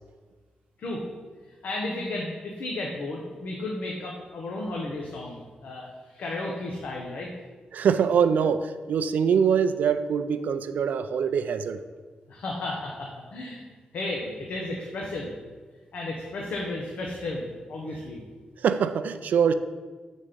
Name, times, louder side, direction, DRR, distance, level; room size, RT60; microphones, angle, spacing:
voice 1, 1.5-7.3 12.3-13.6 13.9-15.3 15.9-18.2, left 2 dB, 75° left, 0.9 m, -33 dB
voice 2, 7.7-11.8 18.6-19.5, right 7 dB, 80° right, 0.4 m, -23 dB
7.3 x 4.1 x 5.0 m
wide cardioid pair, 165°, 3 cm